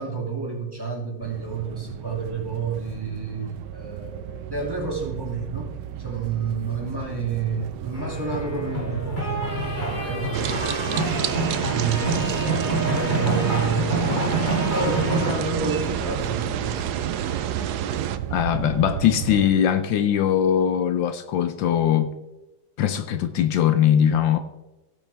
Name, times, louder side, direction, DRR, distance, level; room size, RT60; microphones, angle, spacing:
voice 1, 0.0-14.1 14.7-16.9, right 5 dB, 10° right, 2.3 m, -30 dB
sound 1, 1.2-19.5, right 10 dB, 85° right, 1.5 m, -33 dB
sound 2, 7.9-15.3, right 1 dB, 20° left, 2.9 m, -27 dB
sound 3, 10.3-18.2, right 9 dB, 70° right, 1.0 m, -29 dB
voice 2, 18.3-22.1 22.8-24.4, left 9 dB, 75° left, 1.4 m, -21 dB
17.0 x 7.4 x 3.4 m
omnidirectional pair, 2.2 m